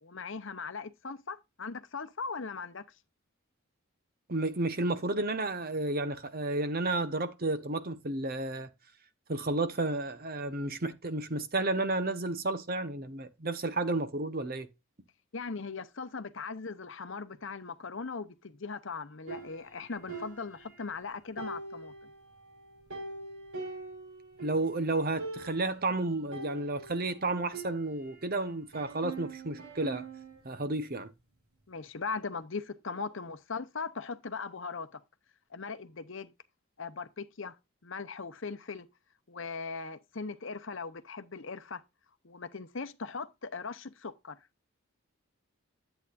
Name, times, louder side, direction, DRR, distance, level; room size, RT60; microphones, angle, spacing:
voice 1, 0.0-2.8 15.3-21.9 31.7-35.0 35.5-36.3 36.8-37.6 37.8-38.9 39.3-41.8 42.2-44.4, left 4 dB, 60° left, 0.8 m, -39 dB
voice 2, 4.3-8.7 9.3-14.7 24.4-30.1 30.4-31.1, right 2 dB, 40° right, 0.9 m, -32 dB
sound 1, 19.3-21.0 21.4-24.7 24.9-25.0 25.2-25.8 26.3-28.3 28.7-30.4, right 3 dB, 75° right, 5.0 m, -44 dB
11.0 x 8.1 x 2.5 m
head